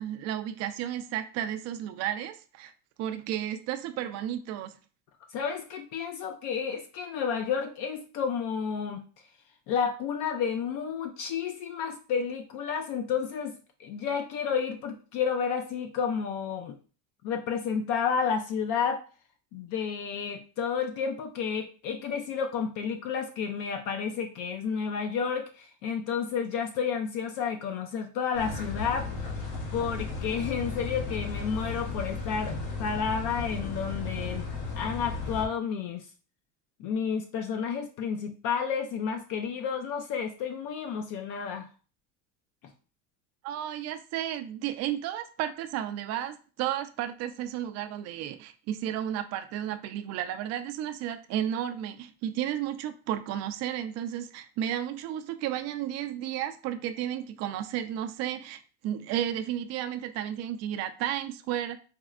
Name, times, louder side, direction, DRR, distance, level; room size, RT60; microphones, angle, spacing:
voice 1, 0.0-2.7 3.0-4.8 43.4-61.8, right 11 dB, 45° right, 0.4 m, -33 dB
voice 2, 5.3-9.0 9.7-13.5 13.8-16.8 17.2-19.0 19.5-29.1 29.7-36.1 36.8-41.7, left 6 dB, 60° left, 0.5 m, -31 dB
sound 1, 28.3-35.5, left 4 dB, 85° left, 1.1 m, -35 dB
4.3 x 2.0 x 2.4 m
supercardioid pair, 120°, 36 cm